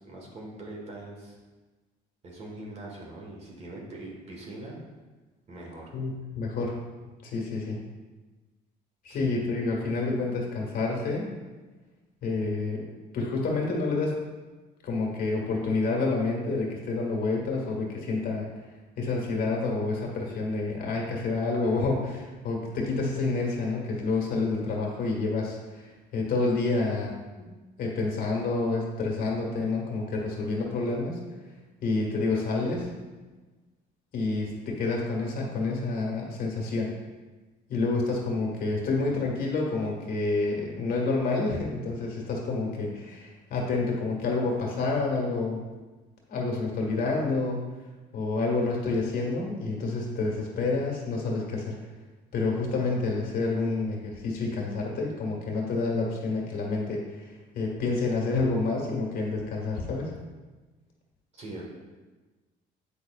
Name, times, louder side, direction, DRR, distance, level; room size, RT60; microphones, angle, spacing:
voice 1, 0.0-1.4 2.2-4.8 5.5-6.0 9.1-9.3 61.3-61.7, right 2 dB, 40° right, -1 dB, 1.5 m, -42 dB
voice 2, 5.9-6.7 7.2-7.8 9.0-11.3 12.2-12.9 13.1-14.2 14.8-18.5 19.0-27.5 27.8-31.2 31.8-32.9 34.1-36.9 37.7-45.6 46.3-47.6 48.1-51.8 52.3-60.1, left 3 dB, 60° left, -1 dB, 1.6 m, -28 dB
8.3 x 5.1 x 2.4 m, 1.3 s
cardioid pair, 110°, 17 cm